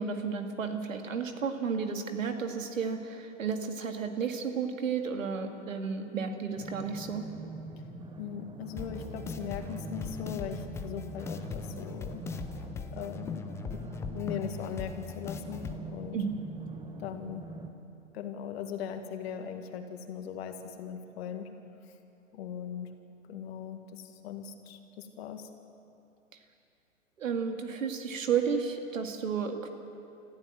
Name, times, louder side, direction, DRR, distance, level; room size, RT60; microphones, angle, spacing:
voice 1, 0.0-7.2 16.1-16.4 27.2-29.7, right 6 dB, 75° right, 5 dB, 2.2 m, -32 dB
sound 1, 6.6-17.7, right 3 dB, 10° right, 1.1 m, -44 dB
voice 2, 8.2-12.2 12.9-13.4 13.7-13.8 14.1-16.2 17.0-17.5 18.1-21.5 22.3-22.9 23.3-25.5, left 8 dB, 50° left, 6 dB, 2.1 m, -39 dB
sound 2, 8.8-15.8, left 5 dB, 5° left, 0.5 m, -40 dB
26.5 x 14.5 x 7.6 m, 2.7 s
hypercardioid pair, 120°, 40 cm